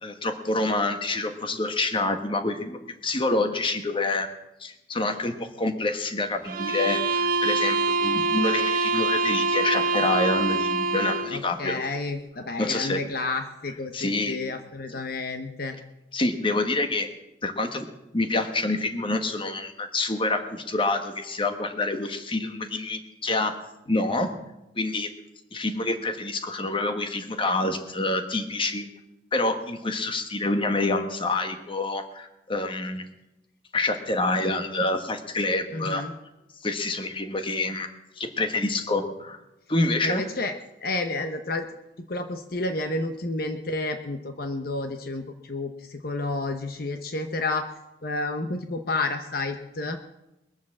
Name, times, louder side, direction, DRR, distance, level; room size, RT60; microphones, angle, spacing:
voice 1, 0.0-4.3 4.6-11.8 12.6-13.0 13.9-14.4 16.1-17.1 17.4-17.8 18.1-23.6 23.9-24.3 24.7-25.1 25.5-28.9 29.3-33.1 33.7-36.0 36.6-37.9 38.2-39.4 39.7-40.2, left 2 dB, 30° left, 7 dB, 1.3 m, -27 dB
sound 1, 6.4-11.4, right 3 dB, 50° right, 0.9 m, -25 dB
voice 2, 11.3-15.8 35.7-36.1 40.0-40.5 40.8-41.7 42.1-47.7 48.0-50.0, left 2 dB, 55° left, 6 dB, 0.9 m, -30 dB
22.0 x 7.3 x 7.2 m, 0.93 s
head